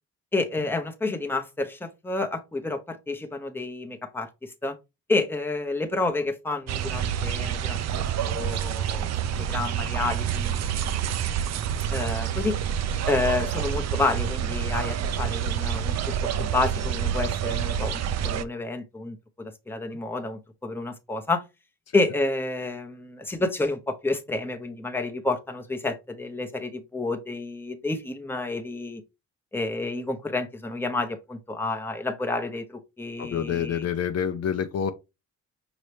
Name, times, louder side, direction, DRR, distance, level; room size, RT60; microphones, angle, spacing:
voice 1, 0.3-4.8 5.1-9.1 9.4-11.0 11.9-12.6 13.1-15.9 16.2-21.4 21.9-29.0 29.5-33.9, left 3 dB, 5° left, 0.8 m, -29 dB
sound 1, 6.7-18.4, right 9 dB, 60° right, 0.5 m, -28 dB
voice 2, 33.2-34.9, left 8 dB, 55° left, 0.6 m, -27 dB
5.5 x 2.9 x 3.2 m
cardioid pair, 90°, 30 cm